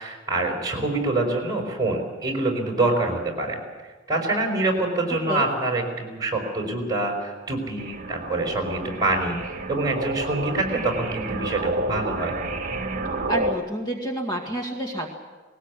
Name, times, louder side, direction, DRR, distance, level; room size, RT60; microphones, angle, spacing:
voice 1, 0.0-3.6 4.1-9.4 9.7-12.3, right 2 dB, 20° right, 2 dB, 4.8 m, -25 dB
sound 1, 7.8-13.5, right 2 dB, 45° right, 1.9 m, -30 dB
voice 2, 13.3-15.1, right 1 dB, 20° left, 0 dB, 2.1 m, -29 dB
20.0 x 19.0 x 8.4 m, 1.3 s
head